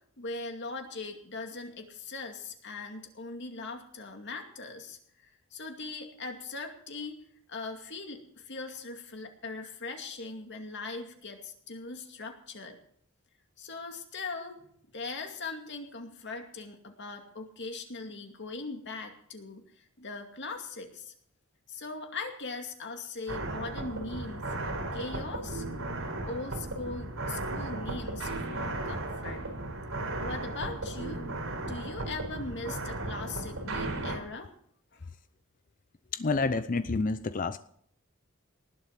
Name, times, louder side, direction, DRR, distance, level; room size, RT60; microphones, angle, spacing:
voice 1, 0.2-7.2 7.5-12.8 13.6-14.6 14.9-21.1 21.7-25.6 26.3-29.4 30.2-31.3 31.6-34.5 34.9-35.1, left 3 dB, 55° left, 4 dB, 2.3 m, -40 dB
sound 1, 23.3-34.2, right 2 dB, 85° right, 4.0 m, -35 dB
voice 2, 36.1-37.6, left 3 dB, 40° left, 12 dB, 0.6 m, -28 dB
19.0 x 8.2 x 5.9 m, 0.63 s
head